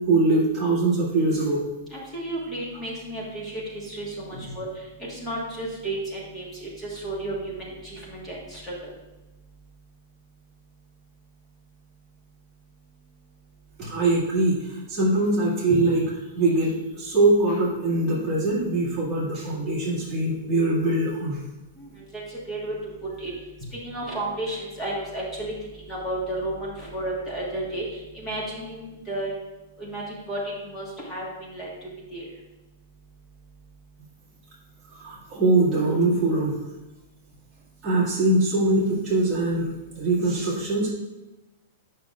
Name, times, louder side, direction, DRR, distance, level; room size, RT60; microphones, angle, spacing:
voice 1, 0.1-1.6 13.8-16.1 16.4-21.4 35.0-36.6 37.8-39.7 40.0-40.9, right 2 dB, 15° right, -8 dB, 2.1 m, -22 dB
voice 2, 1.9-4.7 5.0-8.9 21.8-22.7 23.2-23.3 23.8-25.5 25.9-27.8 28.1-29.3 29.8-30.4 30.6-32.2, right 1 dB, 10° left, -5 dB, 1.5 m, -33 dB
8.7 x 5.8 x 2.4 m, 1.1 s
supercardioid pair, 175°, 0 cm